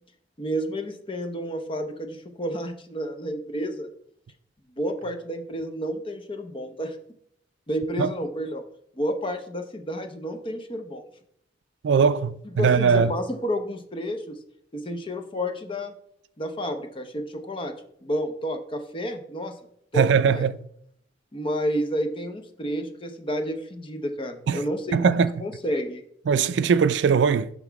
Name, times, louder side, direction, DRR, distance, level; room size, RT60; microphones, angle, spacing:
voice 1, 0.4-3.9 4.8-7.0 7.7-8.6 9.0-11.0 12.4-14.4 14.7-15.9 16.4-17.7 18.0-19.6 19.9-20.4 21.3-26.0, equal, 30° left, 0.8 m, -30 dB
voice 2, 11.8-13.1 19.9-20.6 24.5-24.6 24.9-25.3 26.3-27.5, right 6 dB, 65° right, 0.3 m, -20 dB
5.9 x 5.8 x 4.6 m
head